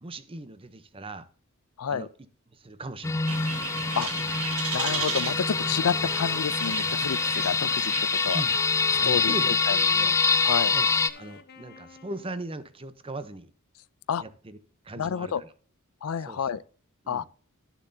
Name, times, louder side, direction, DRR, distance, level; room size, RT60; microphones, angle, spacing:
voice 1, 0.0-1.3 1.9-2.1 2.5-3.4 8.3-8.6 9.0-10.2 10.7-10.9 11.2-13.5 14.2-14.6 14.8-15.5 16.2-16.5 17.0-17.3, right 2 dB, 25° right, 0.7 m, -39 dB
sound 1, 3.0-11.1, left 4 dB, 15° left, 0.3 m, -25 dB
Wind instrument woodwind instrument, 3.2-7.9 8.5-12.5, left 5 dB, 50° left, 0.8 m, -47 dB
sound 2, 3.3-11.1, right 6 dB, 80° right, 1.6 m, -37 dB
voice 2, 4.7-7.9 8.2-8.4 9.0-9.8 10.4-10.7 14.1-14.2 15.0-15.4 16.0-16.6 17.1-17.2, left 7 dB, 80° left, 0.4 m, -29 dB
12.0 x 7.1 x 2.7 m
head